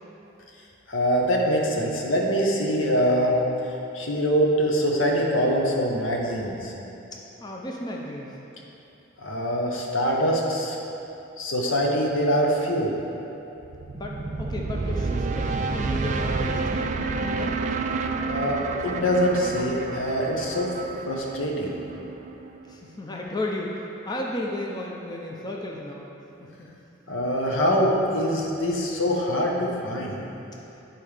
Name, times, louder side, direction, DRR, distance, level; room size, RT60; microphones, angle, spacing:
voice 1, 0.9-3.4 3.9-6.7 9.2-10.8 11.4-12.9 18.3-20.7 21.1-21.8 27.1-30.2, equal, 75° left, -1 dB, 1.0 m, -24 dB
voice 2, 7.4-8.4 13.9-17.6 22.7-26.1 26.4-26.7, left 1 dB, 20° left, -2 dB, 0.5 m, -34 dB
sound 1, 13.6-22.7, right 3 dB, 40° right, 0.3 m, -29 dB
9.1 x 4.4 x 4.9 m, 2.9 s
head